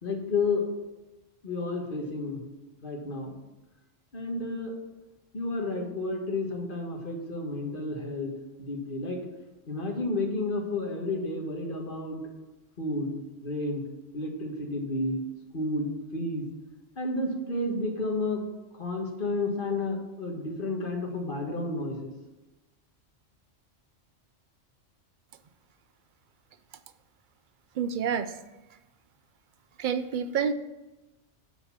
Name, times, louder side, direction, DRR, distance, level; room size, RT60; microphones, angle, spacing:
voice 1, 0.0-0.7 1.4-2.4 2.8-3.3 4.1-4.8 5.3-8.3 8.6-9.2 9.7-12.2 12.8-13.1 13.4-13.8 14.1-15.2 15.5-16.5 16.9-18.4 18.7-22.1, left 2 dB, 45° left, 1 dB, 1.6 m, -31 dB
voice 2, 27.7-28.4 29.8-30.5, right 7 dB, 60° right, 11 dB, 0.5 m, -28 dB
8.0 x 4.5 x 7.0 m, 1.1 s
omnidirectional pair, 1.3 m